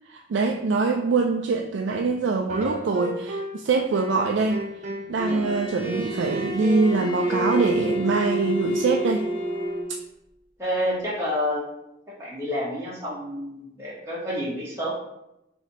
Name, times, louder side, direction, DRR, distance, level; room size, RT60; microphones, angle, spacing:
voice 1, 0.1-4.6 5.1-9.3, right 4 dB, 70° right, 2 dB, 0.3 m, -23 dB
sound 1, 2.5-3.7 3.9-9.8, equal, 40° right, 0.8 m, -33 dB
Bowed string instrument, 5.2-10.0, right 1 dB, 30° left, 0.4 m, -30 dB
voice 2, 10.6-11.7 12.2-14.9, equal, 15° right, -7 dB, 1.0 m, -28 dB
4.1 x 2.7 x 4.0 m, 0.88 s
head